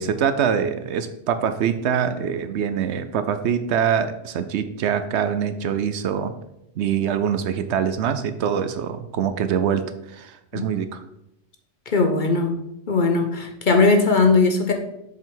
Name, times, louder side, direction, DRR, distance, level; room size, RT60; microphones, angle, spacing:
voice 1, 0.0-6.3 6.8-9.8 10.1-11.0, right 8 dB, 70° right, 10 dB, 0.8 m, -24 dB
voice 2, 11.9-12.6 12.9-14.7, left 3 dB, 45° left, 4 dB, 0.8 m, -19 dB
7.4 x 5.4 x 3.8 m, 0.83 s
omnidirectional pair, 1.2 m